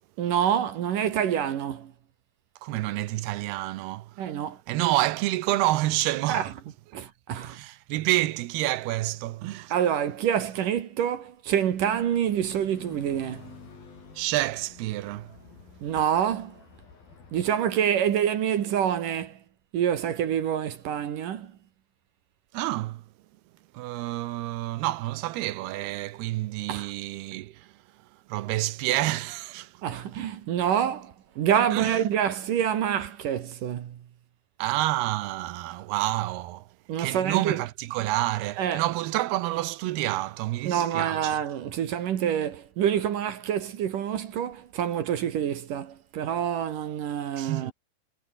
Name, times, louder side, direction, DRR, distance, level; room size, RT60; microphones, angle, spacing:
voice 1, 0.2-1.9 4.2-4.6 6.3-6.5 6.9-7.6 9.7-13.5 15.8-16.6 17.3-19.4 19.7-21.5 26.7-26.9 29.8-34.0 36.9-37.6 38.6-38.8 40.6-47.7, right 9 dB, 60° right, 2.9 m, -27 dB
voice 2, 2.6-4.2 4.7-6.5 7.4-9.7 14.2-15.3 22.5-23.0 23.7-27.7 28.3-29.7 31.7-32.0 34.6-36.7 37.0-41.4 47.4-47.7, right 16 dB, 85° right, 2.9 m, -28 dB
sound 1, 11.7-17.5, left 4 dB, 60° left, 8.2 m, -49 dB
omnidirectional pair, 4.6 m